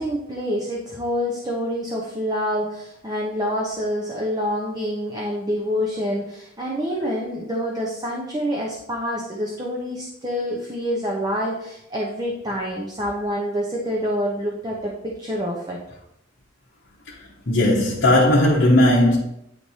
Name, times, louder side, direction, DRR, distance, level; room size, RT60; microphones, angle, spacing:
voice 1, 0.0-15.8, equal, 20° right, 0.9 m, -27 dB
voice 2, 17.5-19.2, left 1 dB, 60° left, 1.0 m, -16 dB
9.7 x 3.3 x 4.2 m
head